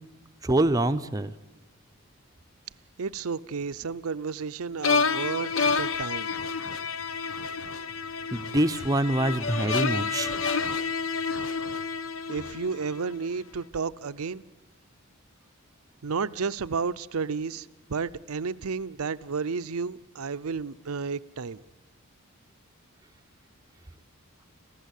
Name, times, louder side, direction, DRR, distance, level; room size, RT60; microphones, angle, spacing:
voice 1, 0.4-1.3 8.3-10.3, right 1 dB, 15° right, 8 dB, 0.7 m, -25 dB
voice 2, 3.0-5.5 5.8-6.3 12.3-14.4 16.0-21.6, right 5 dB, 80° right, 15 dB, 0.6 m, -32 dB
sound 1, 4.8-13.0, left 5 dB, 65° left, 0.9 m, -29 dB
26.5 x 15.5 x 8.3 m, 1.1 s
head